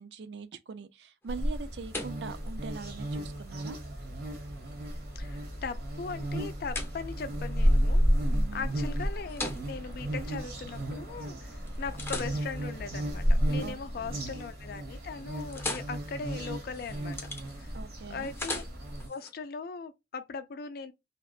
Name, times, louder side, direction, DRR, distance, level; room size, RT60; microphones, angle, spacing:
voice 1, 0.0-3.8 8.3-8.8 13.6-14.1 17.7-18.3, right 5 dB, 75° right, 0.4 m, -42 dB
sound 1, 1.2-11.2 11.7-13.9 14.3-14.7 15.0-19.3, left 2 dB, 15° left, 0.6 m, -43 dB
sound 2, 1.3-19.1, equal, 60° right, 1.0 m, -32 dB
voice 2, 5.2-8.1 8.5-17.3 17.6-17.7 18.1-18.6 19.1-20.9, left 5 dB, 60° left, 0.4 m, -39 dB
2.8 x 2.1 x 2.3 m
head